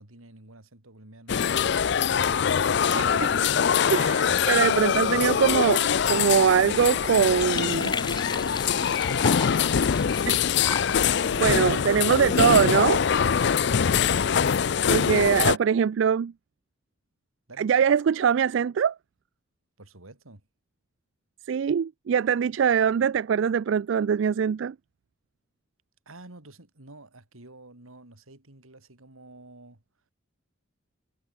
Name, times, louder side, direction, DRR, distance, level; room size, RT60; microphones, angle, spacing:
voice 1, 0.0-1.6 7.5-9.9 13.4-14.3 17.5-17.7 19.8-20.4 26.0-29.8, right 2 dB, 85° right, 3.2 m, -49 dB
sound 1, 1.3-15.6, left 7 dB, 55° left, 0.4 m, -23 dB
voice 2, 2.9-3.5 3.9-5.8 6.1-7.9 10.3-10.4 11.0-13.1 14.9-16.3 17.6-18.9 21.5-24.7, right 7 dB, 65° right, 0.3 m, -23 dB
sound 2, 6.9-12.9, left 4 dB, 20° left, 2.1 m, -38 dB
sound 3, 8.1-15.5, left 3 dB, 70° left, 3.2 m, -39 dB
head